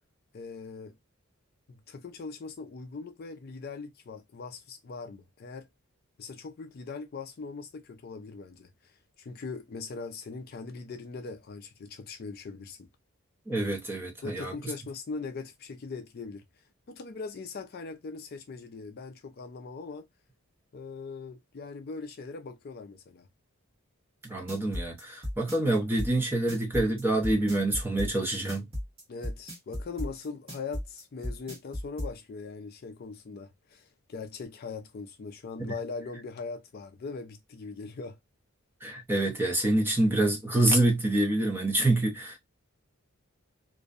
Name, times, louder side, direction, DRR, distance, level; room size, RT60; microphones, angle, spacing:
voice 1, 0.3-0.9 1.7-5.7 6.2-12.9 14.2-20.1 20.7-23.3 29.1-38.2, left 4 dB, 45° left, 0.3 m, -41 dB
voice 2, 13.5-14.5 24.2-28.7 35.6-35.7 38.8-42.4, right 1 dB, 10° right, 0.6 m, -26 dB
sound 1, 24.2-32.1, left 1 dB, 25° right, 1.1 m, -35 dB
2.5 x 2.1 x 2.4 m
head